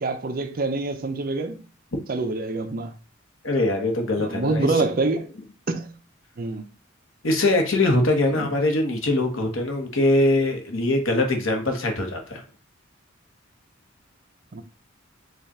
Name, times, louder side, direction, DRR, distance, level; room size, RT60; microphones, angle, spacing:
voice 1, 0.0-1.6 2.1-2.9 4.2-5.3 5.7-5.9 6.4-6.6 8.3-8.5 14.5-14.6, right 3 dB, 50° right, 0.5 m, -26 dB
voice 2, 3.4-4.9 7.2-12.4, left 2 dB, 90° left, 1.1 m, -22 dB
5.0 x 2.4 x 4.2 m
head